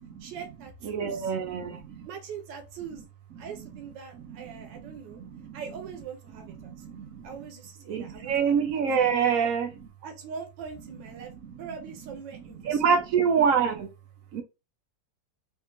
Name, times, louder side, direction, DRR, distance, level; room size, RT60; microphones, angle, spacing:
voice 1, 0.2-1.3 2.0-3.1 3.4-5.2 5.5-6.8 7.2-8.6 10.0-12.9, right 6 dB, 90° right, 1.4 m, -42 dB
voice 2, 0.8-2.1 4.2-5.6 6.6-7.3 7.9-9.9 12.6-13.9 14.3-14.4, right 6 dB, 70° right, 0.8 m, -26 dB
3.4 x 2.8 x 2.9 m
omnidirectional pair, 1.9 m